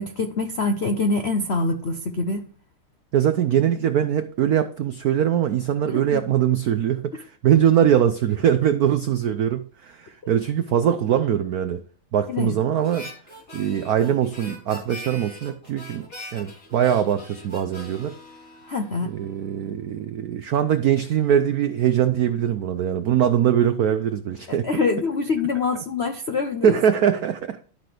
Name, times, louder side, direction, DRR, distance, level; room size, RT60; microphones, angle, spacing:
voice 1, 0.0-2.5 5.9-6.3 12.3-12.5 18.6-19.1 24.5-26.8, left 3 dB, 75° left, 0.6 m, -25 dB
voice 2, 3.1-11.8 12.1-13.1 13.5-16.1 16.3-18.2 19.0-24.7 26.6-27.6, right 9 dB, 90° right, 0.8 m, -22 dB
Harmonica, 12.8-19.3, equal, 45° left, 4.6 m, -41 dB
12.0 x 6.0 x 4.9 m
omnidirectional pair, 2.4 m